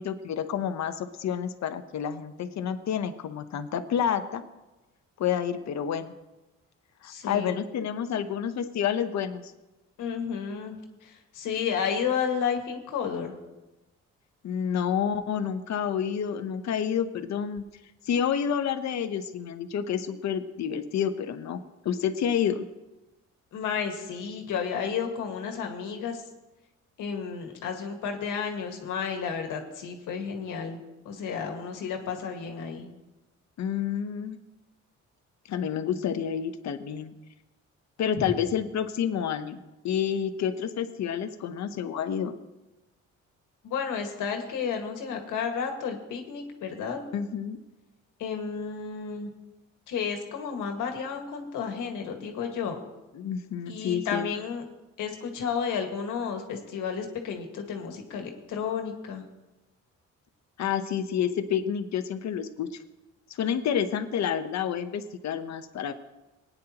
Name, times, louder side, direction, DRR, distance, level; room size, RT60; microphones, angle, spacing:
voice 1, 0.0-4.4 5.2-6.1 7.0-9.5 14.4-17.6 18.0-21.6 21.8-22.7 33.6-34.4 35.5-37.1 38.0-39.6 39.8-42.3 47.1-47.6 53.1-54.2 60.6-62.7 63.3-65.9, left 8 dB, 65° left, 9 dB, 1.0 m, -29 dB
voice 2, 7.0-7.5 10.0-10.8 11.0-13.3 23.5-26.2 27.0-30.8 31.1-32.9 43.6-47.0 48.2-49.3 49.9-52.8 53.7-54.6 55.0-59.2, left 6 dB, 85° left, 3 dB, 1.8 m, -32 dB
19.0 x 9.5 x 3.0 m, 1.1 s
cardioid pair, 90°, 30 cm